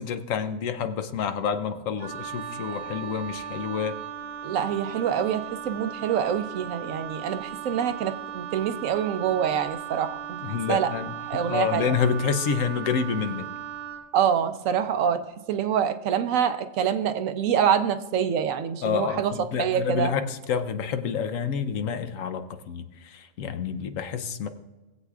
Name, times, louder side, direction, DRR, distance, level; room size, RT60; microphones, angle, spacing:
voice 1, 0.0-4.0 10.4-13.5 18.8-24.5, left 6 dB, 80° left, 9 dB, 1.1 m, -28 dB
Wind instrument woodwind instrument, 2.0-14.1, right 9 dB, 35° right, 0.7 m, -37 dB
voice 2, 4.4-10.9 11.3-11.9 14.1-20.1, right 8 dB, 80° right, 9 dB, 1.1 m, -26 dB
19.5 x 8.0 x 2.4 m, 1.2 s
omnidirectional pair, 1.4 m